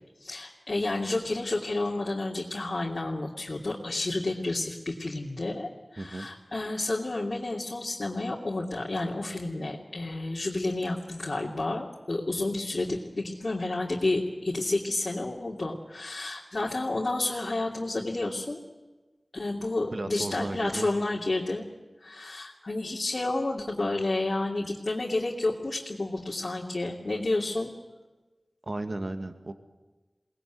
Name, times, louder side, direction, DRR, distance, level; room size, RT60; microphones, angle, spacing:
voice 1, 0.2-18.6 19.3-21.6 22.0-27.7, left 2 dB, 60° left, -3 dB, 2.9 m, -30 dB
voice 2, 6.0-6.3 19.9-20.9 28.6-29.5, right 2 dB, 60° right, 7 dB, 2.0 m, -34 dB
22.5 x 19.5 x 9.4 m, 1.2 s
wide cardioid pair, 55°, 0 cm